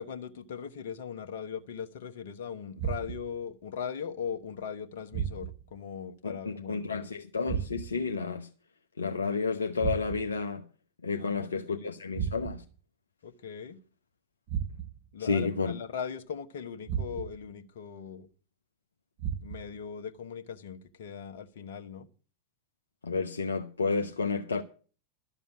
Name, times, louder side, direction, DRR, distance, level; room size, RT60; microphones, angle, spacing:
voice 1, 0.0-7.0 11.2-11.9 13.2-13.8 15.1-18.3 19.4-22.1, left 7 dB, 55° left, 1.2 m, -39 dB
sound 1, 2.8-3.4 5.1-5.8 7.5-8.1 9.8-10.4 12.1-12.8 14.5-15.1 16.9-17.5 19.2-19.8, right 8 dB, 40° right, 4.2 m, -35 dB
voice 2, 6.2-8.5 9.0-10.6 11.0-12.6 15.2-15.7 23.0-24.6, left 4 dB, 75° left, 0.9 m, -31 dB
12.5 x 7.0 x 8.5 m
figure-of-eight pair, 90°, 0 cm